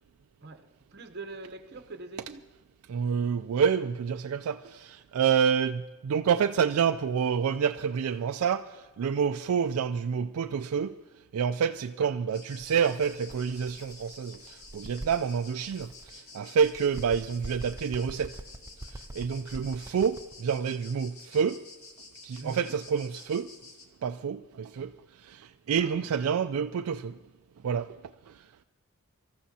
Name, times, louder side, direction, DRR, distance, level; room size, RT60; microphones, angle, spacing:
voice 1, 0.4-2.4 12.0-12.3 22.4-22.8 25.8-26.1, right 3 dB, 50° right, 0.8 m, -44 dB
voice 2, 2.9-11.0 11.3-18.4 19.2-21.6 22.2-23.5 24.0-25.0 25.2-27.2 27.6-28.0 28.3-28.4, right 7 dB, 75° right, 0.4 m, -28 dB
sound 1, 12.3-23.9, left 3 dB, 70° left, 2.0 m, -50 dB
Bird, 12.6-16.2 16.5-20.4, right 1 dB, 15° right, 0.5 m, -45 dB
25.0 x 14.0 x 2.8 m
head